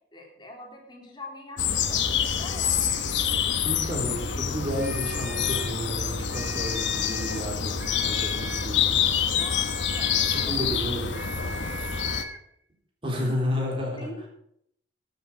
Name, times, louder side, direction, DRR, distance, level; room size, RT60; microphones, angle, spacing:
voice 1, 0.1-3.0 9.3-11.7 13.2-13.3 14.0-14.3, left 1 dB, 25° left, 0 dB, 3.0 m, -44 dB
sound 1, 1.6-12.2, left 7 dB, 85° left, 1.0 m, -27 dB
voice 2, 3.6-8.9 10.3-11.2 13.0-14.1, equal, 30° right, -1 dB, 3.6 m, -31 dB
sound 2, 4.7-5.8 6.3-7.5 7.8-8.8 9.4-10.6 11.1-12.5, right 1 dB, 10° right, 0.9 m, -40 dB
12.0 x 7.4 x 6.2 m, 0.71 s
head